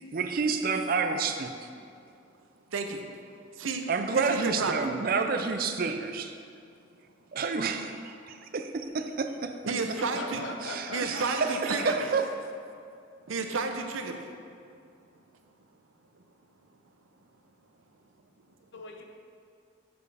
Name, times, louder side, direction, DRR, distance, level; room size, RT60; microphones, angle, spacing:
voice 1, 0.1-1.5 3.9-6.4 7.3-8.0 8.5-9.5 10.6-12.3, right 4 dB, 45° right, 7 dB, 0.4 m, -29 dB
voice 2, 2.7-3.0 3.6-3.8 4.1-4.9 9.6-10.4 10.9-12.1 13.3-14.3, right 4 dB, 90° right, 5 dB, 0.6 m, -31 dB
voice 3, 10.0-11.9 18.7-19.0, left 2 dB, 65° left, 3 dB, 0.8 m, -40 dB
7.1 x 6.8 x 3.4 m, 2.4 s
head